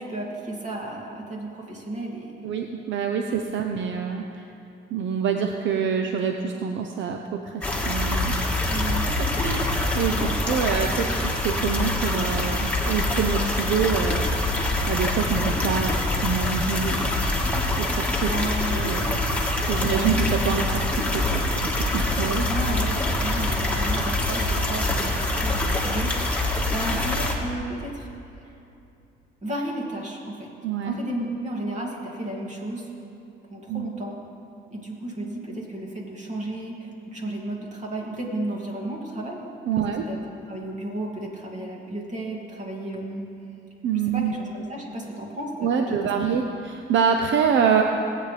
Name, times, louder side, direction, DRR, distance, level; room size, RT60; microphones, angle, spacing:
voice 1, 0.0-2.3 3.9-4.0 8.7-9.1 10.1-10.8 17.8-19.1 19.8-20.2 22.2-28.1 28.4-28.6 29.4-30.5 30.8-32.9 33.5-34.2 34.7-39.5 39.8-40.2 40.5-43.3 44.0-46.1, right 1 dB, 35° right, -1 dB, 2.3 m, -33 dB
voice 2, 2.4-4.4 4.9-8.5 9.2-14.3 14.9-17.1 17.8-18.3 18.7-19.0 19.7-21.6 21.9-22.4 30.6-30.9 33.7-33.9 39.7-40.0 43.8-44.3 45.6-47.8, right 7 dB, 70° right, 4 dB, 0.7 m, -26 dB
sound 1, 7.6-27.3, left 2 dB, 5° left, 1.6 m, -25 dB
19.0 x 8.6 x 3.3 m, 2.6 s
cardioid pair, 90°, 20 cm